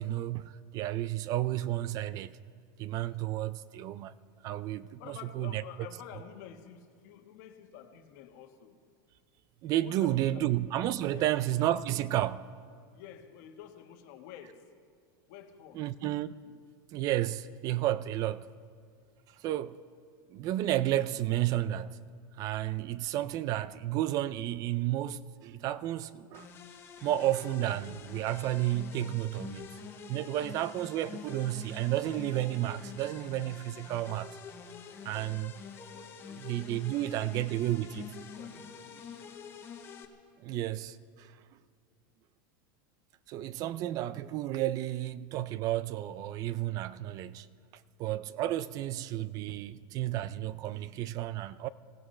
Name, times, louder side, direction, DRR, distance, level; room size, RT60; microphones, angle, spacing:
voice 1, 0.0-2.4 2.8-4.1 4.4-5.6 9.6-12.5 15.7-16.5 16.9-18.5 19.4-19.8 20.3-22.0 22.4-26.5 27.0-29.8 30.1-34.4 35.0-35.5 36.4-38.1 40.4-41.3 43.3-47.5 48.0-51.7, right 13 dB, 35° right, 0.4 m, -32 dB
voice 2, 5.0-8.8 9.8-10.6 11.1-11.4 12.9-14.6 15.3-15.8 35.0-35.4 35.9-36.5 36.8-39.3, left 9 dB, 55° left, 1.4 m, -50 dB
sound 1, 26.3-40.0, left 6 dB, 20° left, 1.1 m, -47 dB
26.0 x 17.0 x 3.3 m
supercardioid pair, 160°, 11 cm